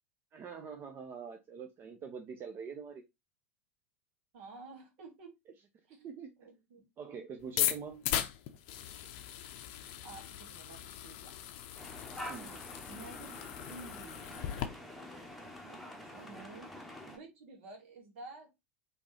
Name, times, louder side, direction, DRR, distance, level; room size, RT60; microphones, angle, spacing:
voice 1, 0.3-3.0 6.0-6.5 7.0-8.0 12.2-12.6 16.0-16.3, right 6 dB, 30° right, 0.7 m, -45 dB
voice 2, 4.3-5.3 5.9-6.0 6.4-6.9 10.0-11.3 12.9-14.6 15.6-16.7 17.0-18.5, right 3 dB, 55° right, 1.9 m, -51 dB
sound 1, 7.4-14.7, left 11 dB, 50° left, 0.6 m, -38 dB
sound 2, 11.8-17.2, left 1 dB, ahead, 1.2 m, -47 dB
5.1 x 3.2 x 3.1 m
figure-of-eight pair, 85°, 8 cm